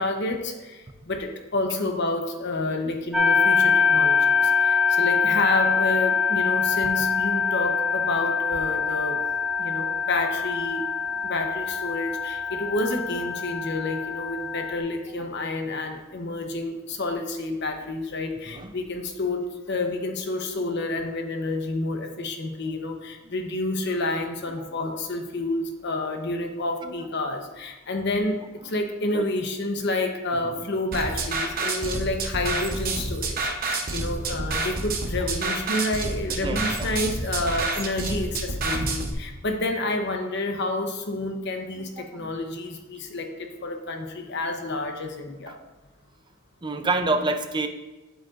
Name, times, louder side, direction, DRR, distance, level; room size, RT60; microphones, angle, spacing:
voice 1, 0.0-9.2 9.6-10.8 11.2-45.6, left 2 dB, 55° left, 4 dB, 0.9 m, -29 dB
sound 1, 3.1-14.8, left 5 dB, 5° right, 1.0 m, -24 dB
sound 2, 30.9-39.1, right 3 dB, 45° right, 0.9 m, -28 dB
voice 2, 36.3-36.9 38.7-38.8 41.8-42.3 45.5-45.6 46.6-47.7, right 2 dB, 20° right, 7 dB, 0.5 m, -29 dB
9.1 x 7.9 x 2.5 m, 1.2 s
head